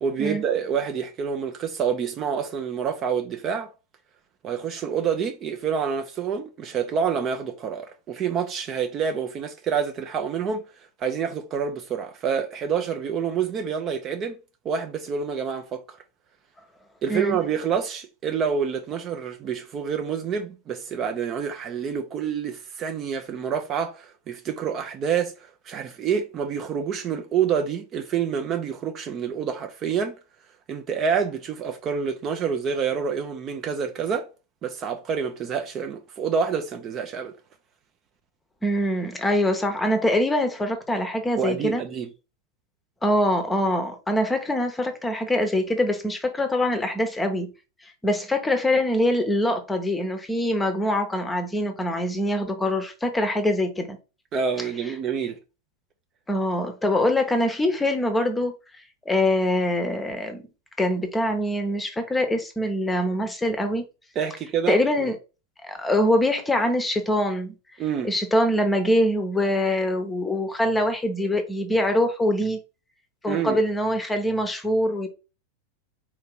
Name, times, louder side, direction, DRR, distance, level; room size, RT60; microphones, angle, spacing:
voice 1, 0.0-3.7 4.4-10.6 11.0-14.4 14.6-16.0 17.0-30.2 30.7-34.3 34.6-37.3 41.4-42.1 54.3-55.4 64.2-65.1 67.8-68.1 73.3-73.6, right 7 dB, 30° right, 0.5 m, -27 dB
voice 2, 38.6-41.8 43.0-47.5 48.0-54.0 56.3-58.5 59.1-60.4 60.8-63.8 64.7-65.2 65.6-67.5 68.0-72.6 73.2-75.1, left 1 dB, 10° left, 0.9 m, -24 dB
4.3 x 2.8 x 3.6 m
figure-of-eight pair, 90°, 0 cm